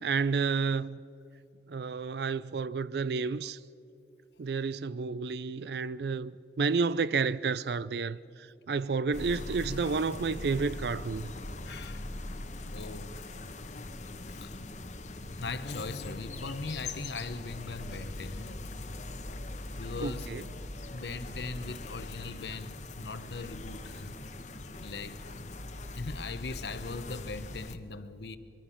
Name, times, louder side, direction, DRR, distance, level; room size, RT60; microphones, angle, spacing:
voice 1, 0.0-1.0 1.7-3.6 4.4-11.3 20.0-20.4, right 4 dB, 65° right, 0.4 m, -31 dB
sound 1, 9.1-27.7, left 2 dB, 40° left, 1.0 m, -41 dB
voice 2, 11.6-12.1 12.7-13.1 14.3-14.6 15.4-18.6 19.8-20.6 20.9-24.2 24.8-25.5 25.9-28.4, left 3 dB, 70° left, 1.0 m, -40 dB
23.5 x 22.5 x 5.8 m
head